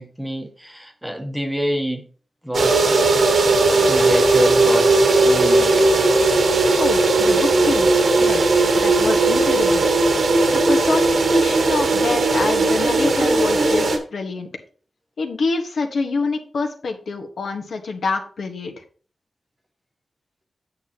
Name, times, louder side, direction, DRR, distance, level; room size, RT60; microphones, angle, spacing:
voice 1, 0.0-2.1 2.4-3.1 3.9-5.9, equal, 5° right, 1.0 m, -27 dB
sound 1, 2.5-14.0, right 3 dB, 65° right, 1.4 m, -17 dB
voice 2, 6.8-9.9 10.5-14.5 15.2-18.7, left 4 dB, 75° left, 1.4 m, -26 dB
8.7 x 8.5 x 2.9 m
wide cardioid pair, 175°, 0 cm